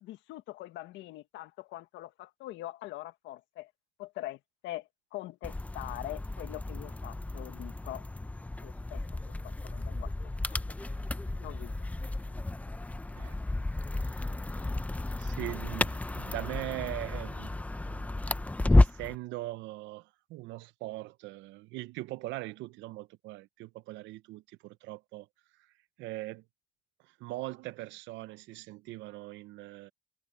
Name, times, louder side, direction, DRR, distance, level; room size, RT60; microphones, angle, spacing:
voice 1, 0.0-3.7 4.0-8.0 8.6-9.0 9.6-10.1 10.4-10.6 11.4-11.7, left 16 dB, 75° left, 1.7 m, -43 dB
sound 1, 5.4-19.2, left 2 dB, 5° left, 0.7 m, -32 dB
voice 2, 15.2-17.6 17.9-18.1 18.3-18.4 18.7-25.3 26.0-26.4 27.2-29.9, right 18 dB, 75° right, 0.7 m, -41 dB
cardioid pair, 110°, 19 cm